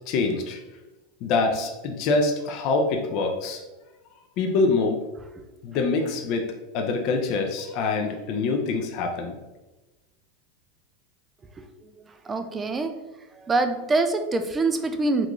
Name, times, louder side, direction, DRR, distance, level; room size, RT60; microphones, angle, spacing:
voice 1, 0.1-0.6 1.2-3.6 4.4-5.0 5.6-9.3, left 3 dB, 50° left, 2 dB, 0.4 m, -25 dB
voice 2, 12.2-12.9 13.3-15.3, right 3 dB, 15° right, 8 dB, 0.3 m, -24 dB
3.7 x 2.4 x 3.0 m, 1.1 s
supercardioid pair, 130°, 0 cm